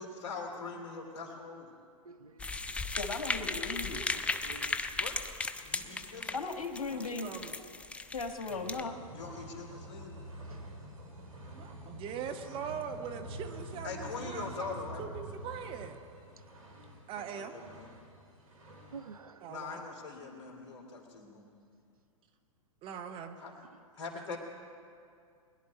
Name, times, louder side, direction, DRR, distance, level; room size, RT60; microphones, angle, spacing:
voice 1, 0.0-1.7 4.9-5.2 5.6-6.4 9.1-10.1 13.8-15.0 17.3-17.9 19.5-21.5 23.4-23.5 24.0-24.4, left 4 dB, 50° left, 3.0 m, -42 dB
voice 2, 2.0-2.8 4.1-5.0 7.5-7.8 10.5-10.6 18.9-19.5 23.6-23.8, right 5 dB, 90° right, 0.7 m, -51 dB
sound 1, 2.4-8.9, left 3 dB, 5° left, 0.4 m, -36 dB
voice 3, 3.0-4.1 6.3-7.3 8.1-8.9, left 3 dB, 85° left, 1.4 m, -37 dB
voice 4, 6.9-7.6 8.5-8.7 11.5-16.0 17.1-17.5 19.4-19.8 22.8-23.4 24.3-24.4, right 7 dB, 30° right, 1.0 m, -42 dB
sound 2, 8.7-19.2, equal, 70° right, 3.2 m, -47 dB
21.5 x 11.0 x 4.2 m
hypercardioid pair, 115°, 18 cm